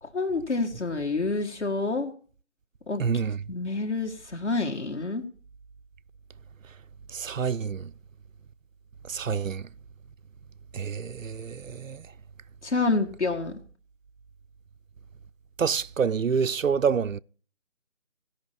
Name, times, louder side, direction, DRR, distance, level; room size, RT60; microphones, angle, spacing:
voice 1, 0.0-2.1 2.9-3.0 3.5-5.3 12.6-13.5, left 3 dB, 60° left, 2.1 m, -28 dB
voice 2, 3.0-3.4 7.1-7.9 9.1-9.6 10.7-12.0 15.6-17.2, right 6 dB, 85° right, 0.6 m, -27 dB
16.5 x 5.7 x 8.5 m
figure-of-eight pair, 165°, 38 cm